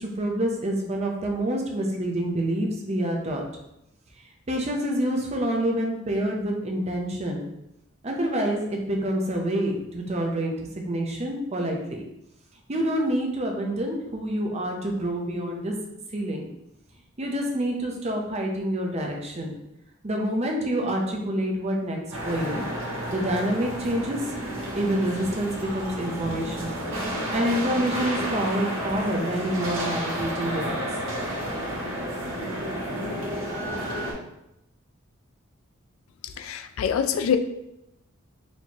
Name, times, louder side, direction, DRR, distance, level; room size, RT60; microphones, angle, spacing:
voice 1, 0.0-3.4 4.5-7.4 8.0-12.0 12.7-15.7 16.1-16.5 17.2-19.6 20.0-22.6 23.1-24.2 24.7-26.8 27.3-30.8, right 1 dB, 30° right, 1 dB, 0.6 m, -27 dB
sound 1, 22.1-34.1, equal, 70° right, 1.2 m, -31 dB
voice 2, 36.2-37.4, left 7 dB, 90° left, 8 dB, 0.4 m, -25 dB
4.3 x 3.1 x 2.9 m, 0.86 s
head